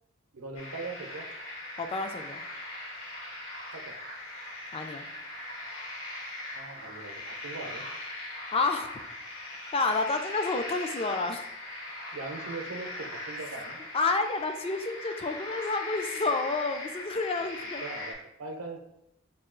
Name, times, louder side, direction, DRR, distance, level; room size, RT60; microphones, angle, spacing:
voice 1, 0.3-1.3 3.7-4.0 6.5-7.9 9.9-10.0 12.1-13.8 17.6-18.8, right 3 dB, 85° right, 4 dB, 0.7 m, -40 dB
sound 1, 0.5-18.1, left 1 dB, 75° left, 1.3 m, -40 dB
voice 2, 1.8-2.4 4.7-5.1 8.5-9.0 9.7-11.4 13.9-17.8, left 3 dB, 25° left, 6 dB, 0.3 m, -29 dB
5.4 x 2.3 x 3.7 m, 0.85 s
head